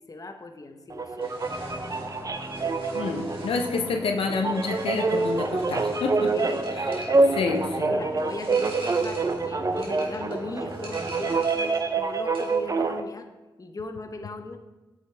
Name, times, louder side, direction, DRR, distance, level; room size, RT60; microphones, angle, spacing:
voice 1, 0.0-1.8 4.7-4.9 6.3-7.6 7.9-13.3 13.6-14.6, left 2 dB, 40° left, 6 dB, 0.7 m, -38 dB
sound 1, 0.9-13.0, right 3 dB, 40° right, 0.5 m, -26 dB
sound 2, 1.2-11.9 12.2-12.7, right 2 dB, 75° right, 1.8 m, -45 dB
sound 3, 1.4-11.4, equal, 10° right, 1.3 m, -40 dB
voice 2, 2.9-6.3 6.7-7.0 7.3-7.9, left 4 dB, 85° left, 4 dB, 0.5 m, -28 dB
8.1 x 5.0 x 3.3 m, 1.1 s
cardioid pair, 45°, 9 cm